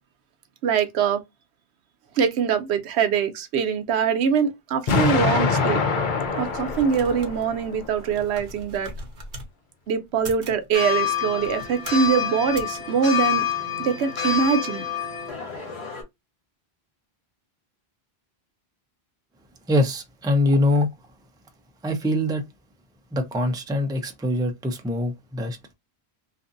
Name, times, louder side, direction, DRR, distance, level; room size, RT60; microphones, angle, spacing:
voice 1, 0.6-1.2 2.2-5.8 6.4-8.9 9.9-14.8, right 7 dB, 85° right, 0.9 m, -23 dB
Explosion, 4.9-7.9, left 5 dB, 55° left, 0.7 m, -24 dB
sound 1, 6.3-9.5 10.1-10.6 11.3-12.1 12.5-12.8, equal, 55° right, 1.0 m, -40 dB
sound 2, 10.7-16.0, left 9 dB, 80° left, 1.2 m, -27 dB
voice 2, 19.7-20.9 21.8-22.4 23.1-25.7, left 1 dB, 5° right, 0.3 m, -23 dB
2.6 x 2.5 x 2.5 m
omnidirectional pair, 1.1 m